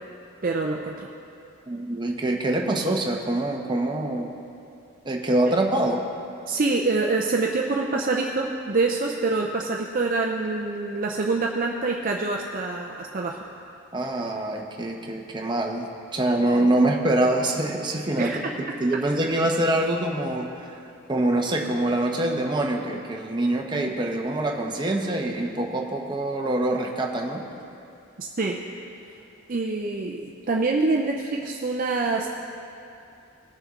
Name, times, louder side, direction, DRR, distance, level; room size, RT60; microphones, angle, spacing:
voice 1, 0.4-1.1 6.5-13.4 18.2-18.4 28.2-28.6 29.5-32.3, right 3 dB, 40° right, 0 dB, 0.5 m, -25 dB
voice 2, 1.7-4.3 5.0-6.1 13.9-18.5 18.8-20.8 21.1-27.4, right 1 dB, 20° right, 1 dB, 0.9 m, -25 dB
20.0 x 6.7 x 3.7 m, 2.6 s
head